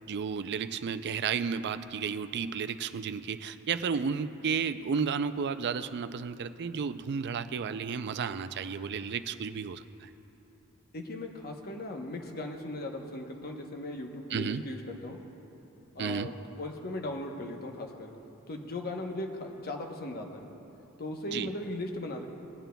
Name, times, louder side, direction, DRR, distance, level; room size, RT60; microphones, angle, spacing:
voice 1, 0.1-10.1 14.3-14.6 16.0-16.3 21.3-21.5, right 6 dB, 50° right, 11 dB, 0.4 m, -32 dB
voice 2, 10.9-15.2 15.9-18.1 18.5-20.5 21.0-22.3, left 1 dB, 45° left, 3 dB, 0.9 m, -38 dB
20.0 x 9.0 x 2.3 m, 2.9 s
head